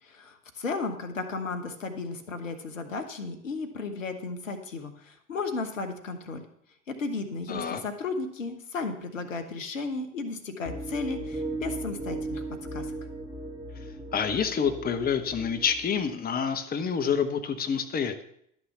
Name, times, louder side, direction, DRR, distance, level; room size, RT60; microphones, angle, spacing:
voice 1, 0.0-6.5 6.9-12.4 12.7-12.9, left 4 dB, 85° left, 8 dB, 1.0 m, -34 dB
voice 2, 7.5-7.8 14.1-18.2, left 7 dB, 25° left, 8 dB, 1.0 m, -28 dB
sound 1, 10.6-16.0, right 2 dB, 10° right, 1.7 m, -37 dB
11.5 x 6.1 x 5.6 m, 0.70 s
figure-of-eight pair, 70°, 38 cm